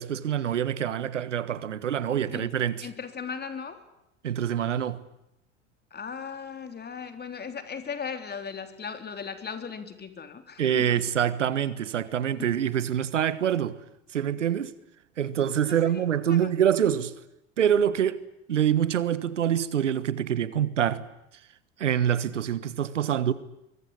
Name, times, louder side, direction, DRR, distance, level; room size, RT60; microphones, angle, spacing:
voice 1, 0.0-2.9 4.2-5.0 10.6-13.8 14.1-14.7 15.2-17.1 17.6-18.2 18.5-21.0 21.8-23.3, right 9 dB, 90° right, 1.4 m, -25 dB
voice 2, 2.8-3.8 5.9-11.0 15.7-16.5, left 6 dB, 25° left, 3.7 m, -37 dB
24.0 x 22.5 x 9.8 m
hypercardioid pair, 80°, 35 cm